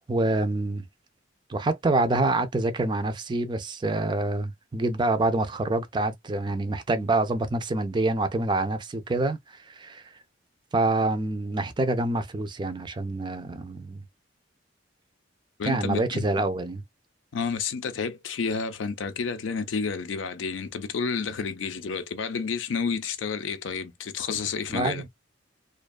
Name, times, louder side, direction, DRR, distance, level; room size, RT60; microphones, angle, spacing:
voice 1, 0.1-0.9 1.5-10.0 10.7-14.0 15.6-16.8 24.7-25.1, right 2 dB, 25° right, 0.3 m, -26 dB
voice 2, 15.6-16.3 17.3-25.0, left 5 dB, 80° left, 0.5 m, -30 dB
2.5 x 2.2 x 2.2 m
head